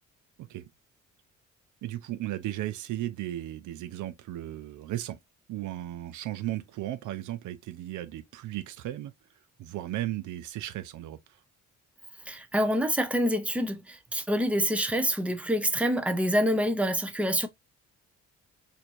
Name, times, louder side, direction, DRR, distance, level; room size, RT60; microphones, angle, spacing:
voice 1, 0.4-0.7 1.8-5.2 5.5-9.1 9.6-11.2, right 14 dB, 75° right, 0.5 m, -35 dB
voice 2, 12.3-17.5, equal, 5° right, 0.6 m, -26 dB
4.4 x 2.7 x 2.5 m
cardioid pair, 90°, 30 cm